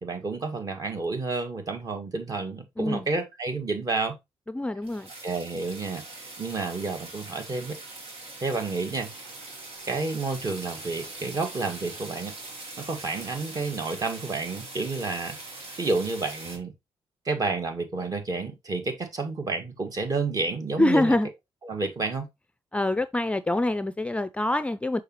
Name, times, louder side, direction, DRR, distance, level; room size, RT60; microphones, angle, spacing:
voice 1, 0.0-4.2 5.2-7.8 8.4-9.1 9.9-12.3 12.8-15.4 15.8-16.7 17.3-21.2 21.6-22.3, right 3 dB, 40° right, 1.9 m, -30 dB
voice 2, 4.5-5.1 20.8-21.3 22.7-25.0, left 1 dB, 10° left, 0.4 m, -25 dB
sound 1, 4.8-16.6, right 2 dB, 80° right, 2.8 m, -42 dB
6.4 x 5.0 x 3.1 m
cardioid pair, 105°, 10 cm